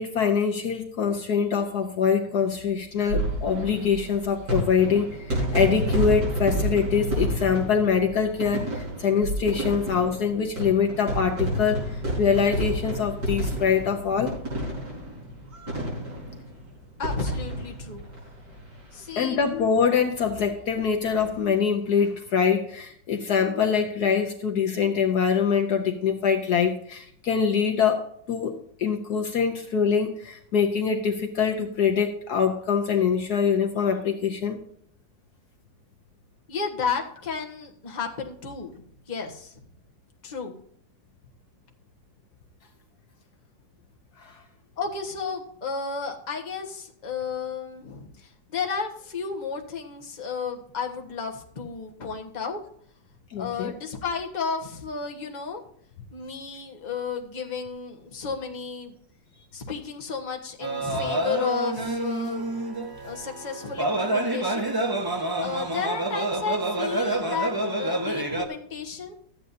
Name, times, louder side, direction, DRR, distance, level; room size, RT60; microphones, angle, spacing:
voice 1, 0.0-14.4 19.2-34.6 44.2-44.3 53.3-53.7, left 6 dB, 60° left, 3 dB, 1.4 m, -24 dB
sound 1, 3.0-19.0 19.3-19.4 19.6-19.7 21.0-21.2, equal, 65° right, 5.7 m, -30 dB
voice 2, 17.0-18.0 18.9-19.4 36.5-39.6 40.2-40.5 44.8-52.6 53.4-55.6 56.1-59.0 59.5-62.5 63.0-64.7 65.4-69.1, left 5 dB, 25° left, 1 dB, 1.3 m, -32 dB
sound 2, 60.6-68.5, right 2 dB, 15° right, 0.8 m, -28 dB
13.5 x 8.9 x 2.7 m, 0.65 s
omnidirectional pair, 2.0 m